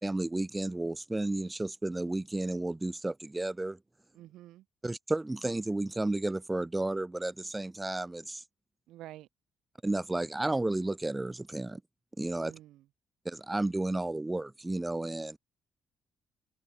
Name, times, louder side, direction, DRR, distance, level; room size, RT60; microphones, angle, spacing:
voice 1, 0.0-3.8 4.8-8.4 9.8-11.8 12.2-12.5 13.2-15.4, right 2 dB, 15° right, 1.6 m, -32 dB
voice 2, 4.1-4.7 8.9-9.3 12.3-12.9, right 14 dB, 85° right, 4.5 m, -49 dB
cardioid pair, 90°, 0 cm